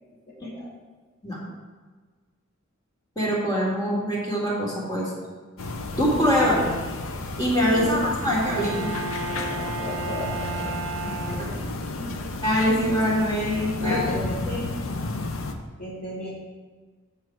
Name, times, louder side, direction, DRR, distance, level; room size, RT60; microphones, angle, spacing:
voice 1, 0.3-0.7 7.7-8.1 9.3-10.8 11.1-11.6 12.0-12.2 13.8-14.4 15.8-16.3, left 2 dB, 35° left, -7 dB, 1.5 m, -35 dB
voice 2, 3.2-5.1 6.0-6.7 7.4-8.9 12.4-14.0 14.5-14.6, equal, 20° left, -5 dB, 2.0 m, -23 dB
sound 1, 5.6-15.5, left 2 dB, 80° left, 0.7 m, -32 dB
Bowed string instrument, 8.2-11.9, right 3 dB, 70° right, 0.6 m, -33 dB
7.6 x 7.0 x 4.6 m, 1.4 s
head